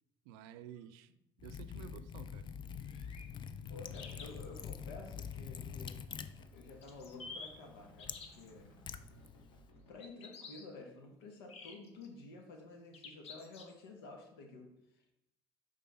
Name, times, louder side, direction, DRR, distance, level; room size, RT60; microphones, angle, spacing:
voice 1, 0.3-1.1 1.4-2.5 9.1-9.2, right 10 dB, 80° right, 0.4 m, -52 dB
Liquid, 1.4-9.7, left 7 dB, 40° left, 0.5 m, -46 dB
sound 1, 2.8-3.3 3.9-4.7 6.8-7.5 8.0-8.5 10.0-10.6 11.5-12.1 12.9-13.9, left 4 dB, 60° left, 1.1 m, -50 dB
voice 2, 3.6-5.9 6.5-8.7 9.9-14.7 14.9-15.0, left 3 dB, 90° left, 1.1 m, -51 dB
sound 2, 3.7-9.9, left 1 dB, 75° left, 1.3 m, -61 dB
5.5 x 3.6 x 5.3 m
hypercardioid pair, 65°, 12 cm